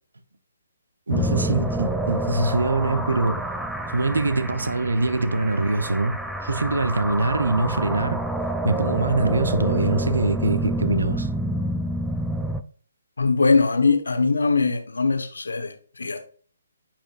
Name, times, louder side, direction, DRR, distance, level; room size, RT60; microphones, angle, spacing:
sound 1, 1.1-12.6, right 1 dB, ahead, 0.4 m, -28 dB
voice 1, 1.1-3.5 3.9-8.2 8.6-11.3, right 2 dB, 70° right, 0.7 m, -23 dB
voice 2, 13.2-16.2, left 4 dB, 70° left, 1.0 m, -21 dB
10.0 x 4.4 x 2.4 m
figure-of-eight pair, 135°, 0 cm